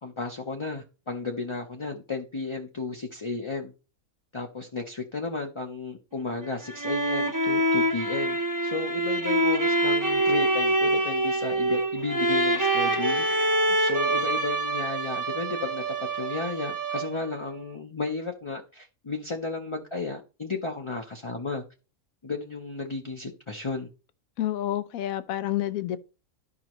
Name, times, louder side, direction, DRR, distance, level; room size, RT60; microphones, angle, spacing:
voice 1, 0.0-3.7 4.3-21.6 22.2-23.9, left 3 dB, 30° left, 0.6 m, -33 dB
sound 1, 6.4-17.3, right 1 dB, 20° right, 0.6 m, -25 dB
voice 2, 24.4-26.0, left 12 dB, 85° left, 1.1 m, -29 dB
12.0 x 5.3 x 3.0 m
omnidirectional pair, 1.4 m